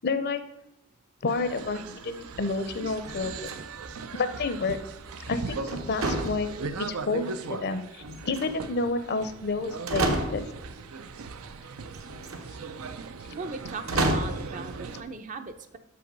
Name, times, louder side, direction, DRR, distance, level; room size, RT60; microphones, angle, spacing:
voice 1, 0.0-0.4 1.2-3.5 4.1-4.8 5.3-10.4, left 3 dB, 50° left, 11 dB, 0.6 m, -30 dB
sound 1, 1.3-15.0, right 4 dB, 85° right, 0.5 m, -39 dB
sound 2, 3.0-3.9 5.7-7.0 8.0-8.8 9.5-9.6 9.9-10.7 11.9-12.4 13.9-14.5, right 2 dB, 70° right, 1.0 m, -30 dB
voice 2, 13.4-15.8, right 4 dB, 35° right, 8 dB, 0.5 m, -38 dB
6.2 x 5.6 x 5.3 m, 0.90 s
head